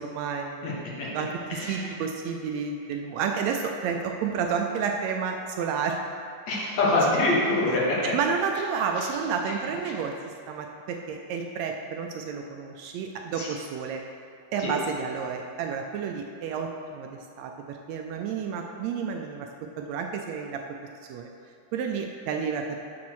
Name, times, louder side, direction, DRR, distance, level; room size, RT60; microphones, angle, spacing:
voice 1, 0.0-0.8 1.1-6.0 8.1-10.1 10.5-14.0 14.5-19.5 19.8-20.6 21.1-21.3 21.7-22.8, right 6 dB, 80° right, 3 dB, 1.7 m, -30 dB
voice 2, 1.5-1.9 6.5-8.1 13.3-13.5 14.6-14.7, left 2 dB, 70° left, -5 dB, 2.8 m, -25 dB
8.6 x 4.2 x 6.3 m, 2.3 s
omnidirectional pair, 3.4 m